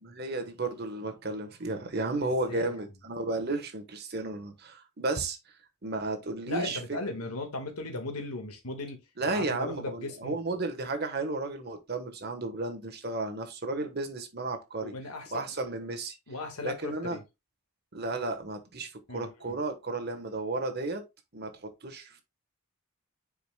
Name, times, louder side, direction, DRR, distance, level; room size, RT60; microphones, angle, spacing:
voice 1, 0.0-5.4 5.8-6.8 9.2-14.9 15.3-16.1 16.6-17.2 17.9-21.0 21.3-22.2, right 2 dB, 45° right, 1.2 m, -33 dB
voice 2, 2.2-2.8 6.5-9.0 9.3-10.4 14.8-15.4 16.3-17.2 19.1-19.6, left 2 dB, 85° left, 1.7 m, -37 dB
8.9 x 4.9 x 2.2 m
head